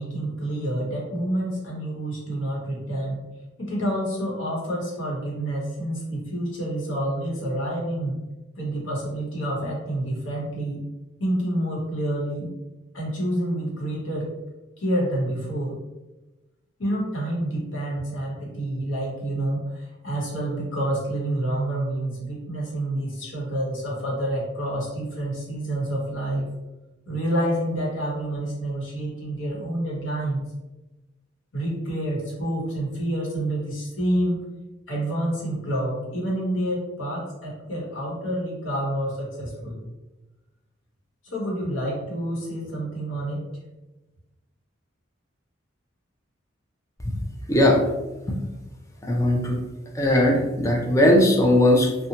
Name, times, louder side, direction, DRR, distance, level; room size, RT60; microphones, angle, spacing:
voice 1, 0.0-3.3 3.6-8.2 8.5-10.8 11.2-12.5 12.9-14.3 14.8-15.8 16.8-26.5 27.1-30.4 31.5-34.4 34.9-39.8 41.2-43.4, right 1 dB, 75° left, -3 dB, 1.0 m, -28 dB
voice 2, 47.5-47.8 48.3-48.4 49.0-49.6 49.9-52.1, left 1 dB, 15° left, 0 dB, 0.3 m, -19 dB
2.8 x 2.1 x 2.7 m, 1.1 s
head